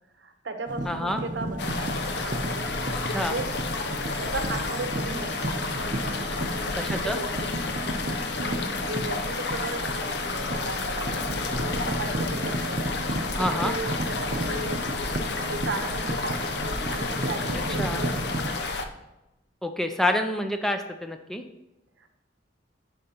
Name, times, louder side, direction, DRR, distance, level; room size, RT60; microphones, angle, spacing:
voice 1, 0.2-1.9 2.2-2.9 3.2-3.5 4.2-5.5 6.3-7.3 8.8-12.8 13.4-14.8 15.5-16.4 16.9-18.5 22.0-22.1, right 2 dB, 70° right, 7 dB, 0.8 m, -36 dB
sound 1, 0.7-18.6, right 1 dB, 45° right, 0.6 m, -33 dB
voice 2, 0.9-1.2 3.1-3.3 6.8-7.2 13.3-13.7 17.8-18.1 19.6-21.4, left 1 dB, ahead, 5 dB, 0.3 m, -27 dB
sound 2, 1.6-18.9, left 3 dB, 60° left, 0.6 m, -31 dB
10.0 x 5.2 x 2.9 m, 0.96 s
head